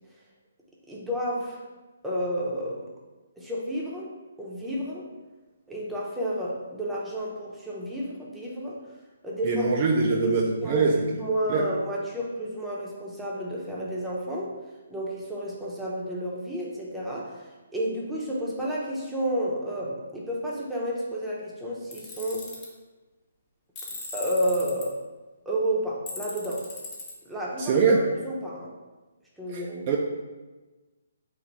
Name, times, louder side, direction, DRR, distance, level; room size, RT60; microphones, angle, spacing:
voice 1, 0.9-1.6 2.0-2.9 3.4-4.1 4.4-5.1 5.7-8.8 9.2-9.7 10.1-14.5 14.9-22.4 24.1-25.0 25.5-26.6 27.2-28.7 29.4-29.9, equal, 5° right, -6 dB, 0.7 m, -31 dB
voice 2, 9.4-11.0 11.5-11.7 27.6-28.0 29.5-30.0, right 4 dB, 35° right, 0 dB, 0.4 m, -23 dB
Tools, 21.9-22.7 23.8-24.9 26.1-27.1, left 3 dB, 20° left, 0.9 m, -38 dB
3.9 x 2.6 x 4.5 m, 1.2 s
hypercardioid pair, 150°, 0 cm